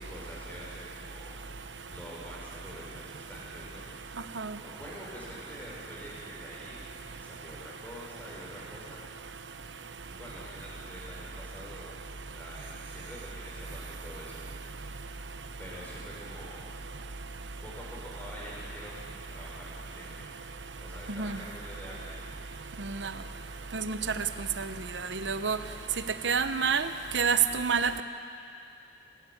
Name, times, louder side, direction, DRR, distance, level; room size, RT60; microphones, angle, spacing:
voice 1, 0.0-1.4 1.9-3.8 4.6-6.8 7.2-9.0 10.1-12.0 12.3-14.4 15.6-16.6 17.6-19.0 19.3-20.2 20.8-22.2, equal, 10° left, -6 dB, 6.4 m, -46 dB
voice 2, 25.2-25.6 26.2-26.9 27.1-28.0, right 6 dB, 80° right, 10 dB, 1.0 m, -27 dB
26.5 x 12.0 x 8.6 m, 2.4 s
head